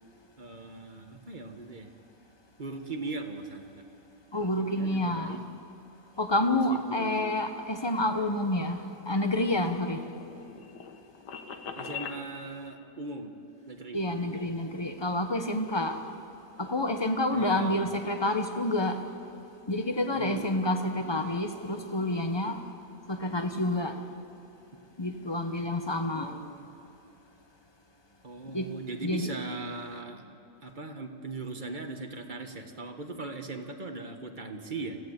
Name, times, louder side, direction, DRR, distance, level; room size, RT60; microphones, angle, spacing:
voice 1, 0.4-1.9 2.6-3.9 4.3-5.4 6.5-7.3 11.7-13.3 13.7-14.4 17.3-17.8 20.1-20.6 26.0-26.7 28.2-35.0, right 3 dB, 30° right, 5 dB, 1.5 m, -39 dB
voice 2, 4.3-5.4 6.2-8.8 9.1-10.0 13.9-16.0 16.6-19.0 19.7-22.6 23.1-24.0 25.0-26.3 28.5-28.7 29.0-29.2, left 1 dB, 20° left, 6 dB, 1.0 m, -28 dB
sound 1, 9.3-12.2, left 6 dB, 85° left, 1.9 m, -41 dB
25.0 x 16.0 x 8.2 m, 2.9 s
omnidirectional pair, 1.8 m